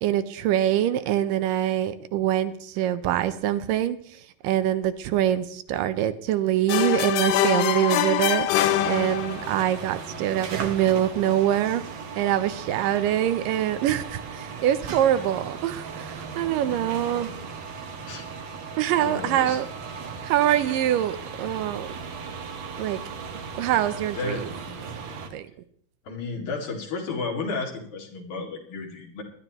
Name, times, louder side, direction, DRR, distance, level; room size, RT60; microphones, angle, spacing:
voice 1, 0.0-4.0 4.4-11.8 12.2-17.3 18.8-19.7 20.2-21.9 22.8-23.0 23.6-24.5 25.3-25.5, right 11 dB, 80° right, 12 dB, 2.3 m, -24 dB
sound 1, 6.7-9.6, left 12 dB, 80° left, 2.2 m, -24 dB
sound 2, 8.5-25.3, right 5 dB, 65° right, 1.2 m, -37 dB
voice 2, 16.6-17.6 18.1-18.3 19.0-19.6 24.1-24.4 26.1-29.2, left 4 dB, 60° left, -1 dB, 3.6 m, -33 dB
20.5 x 11.5 x 3.0 m, 0.63 s
omnidirectional pair, 3.9 m